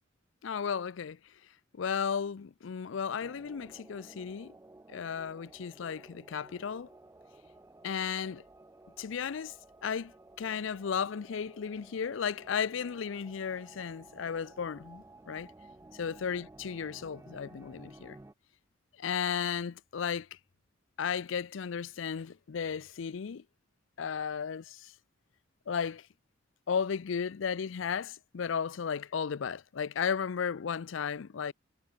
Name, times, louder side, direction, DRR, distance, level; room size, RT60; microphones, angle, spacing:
voice 1, 0.4-1.2 1.7-4.5 4.9-6.9 7.8-8.4 9.0-9.5 9.8-10.1 10.4-15.5 16.0-18.2 19.0-20.3 21.0-23.4 24.0-24.9 25.7-26.1 26.7-31.5, left 7 dB, 75° left, 0.5 m, -34 dB
sound 1, 3.2-18.3, right 2 dB, 15° right, 0.3 m, -55 dB
head